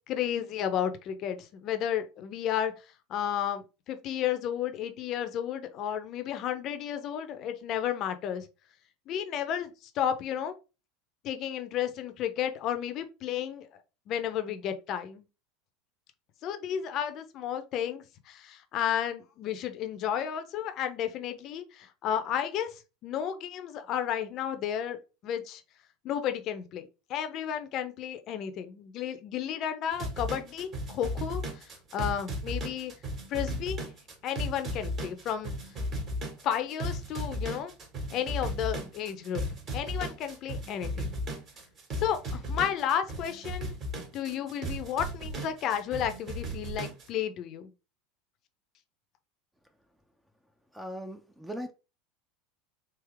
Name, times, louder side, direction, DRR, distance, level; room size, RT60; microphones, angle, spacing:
voice 1, 0.1-2.7 3.1-8.5 9.1-10.5 11.2-13.7 14.1-15.2 16.4-25.6 26.0-32.9 33.3-33.9 34.2-35.6 36.4-37.7 38.1-39.4 39.7-41.1 42.0-43.7 44.1-47.7, left 9 dB, 45° left, 0.7 m, -32 dB
sound 1, 29.9-47.1, equal, 40° right, 1.8 m, -35 dB
voice 2, 50.7-51.7, equal, 5° right, 0.6 m, -39 dB
3.6 x 2.8 x 3.4 m
figure-of-eight pair, 80°, 0 cm